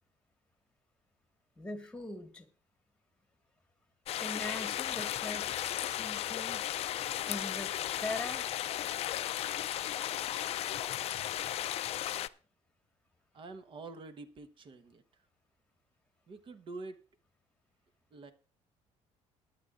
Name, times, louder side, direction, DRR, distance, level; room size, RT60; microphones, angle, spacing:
voice 1, 1.6-2.5 4.2-6.6 7.3-7.7 8.0-8.4, left 2 dB, 10° left, 5 dB, 1.7 m, -41 dB
sound 1, 4.1-12.3, left 12 dB, 55° left, 0.4 m, -35 dB
voice 2, 13.3-15.0 16.3-17.0 18.1-18.3, right 3 dB, 40° right, 10 dB, 1.2 m, -46 dB
21.5 x 9.7 x 2.5 m, 0.38 s
cardioid pair, 135°, 13 cm